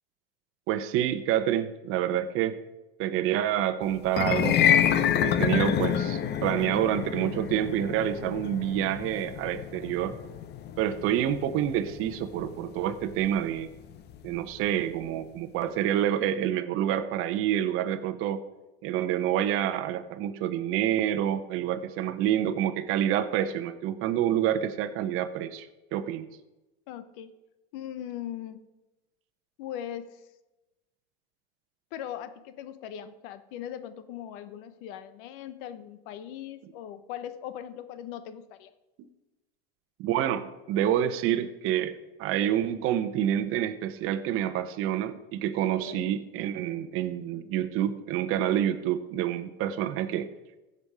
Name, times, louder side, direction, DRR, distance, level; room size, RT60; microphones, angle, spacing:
voice 1, 0.7-2.6 3.0-4.6 4.9-10.2 10.8-13.7 14.2-18.4 18.8-26.3 40.0-41.9 42.2-50.3, right 11 dB, 45° right, 9 dB, 0.9 m, -28 dB
sound 1, 4.1-14.4, left 9 dB, 35° left, 0.8 m, -28 dB
voice 2, 26.9-27.3 27.7-28.6 29.6-30.3 31.9-38.7 45.6-46.1, left 10 dB, 60° left, 13 dB, 1.0 m, -40 dB
15.5 x 5.4 x 4.8 m, 1.0 s
hypercardioid pair, 100°, 31 cm